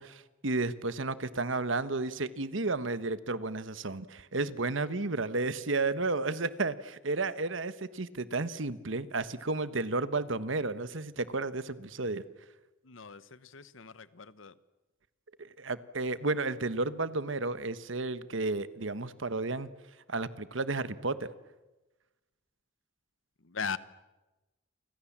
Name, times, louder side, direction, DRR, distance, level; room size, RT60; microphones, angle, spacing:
voice 1, 0.0-12.2 15.4-19.7 20.1-21.3, right 3 dB, 70° right, 1.3 m, -32 dB
voice 2, 12.8-14.5 23.4-23.8, left 6 dB, 75° left, 1.1 m, -39 dB
29.5 x 25.0 x 7.4 m
head